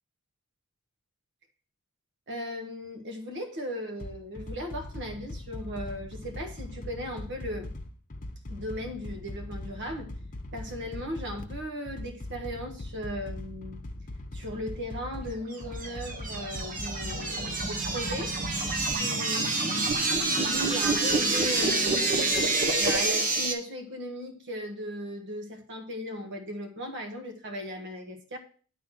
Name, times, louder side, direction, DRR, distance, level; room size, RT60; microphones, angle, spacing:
voice 1, 2.3-7.7 8.5-10.1 10.5-13.8 14.3-18.3 18.9-19.4 19.6-19.9 20.3-28.4, equal, 55° right, 5 dB, 1.5 m, -37 dB
sound 1, 4.0-18.9, left 1 dB, 35° left, 0.9 m, -40 dB
sound 2, 15.5-23.5, right 3 dB, 40° right, 1.2 m, -27 dB
10.5 x 4.1 x 6.2 m, 0.41 s
head